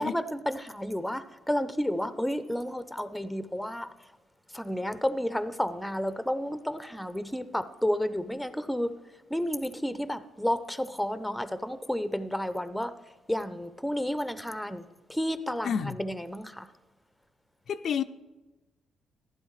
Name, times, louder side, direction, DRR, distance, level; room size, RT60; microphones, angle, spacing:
voice 1, 0.0-3.9 4.5-8.9 9.3-12.9 13.3-14.8 15.1-16.7, equal, 5° left, 0.5 m, -31 dB
voice 2, 15.6-16.0 17.7-18.0, left 7 dB, 60° left, 0.4 m, -29 dB
14.0 x 11.5 x 3.2 m
cardioid pair, 90°, 0 cm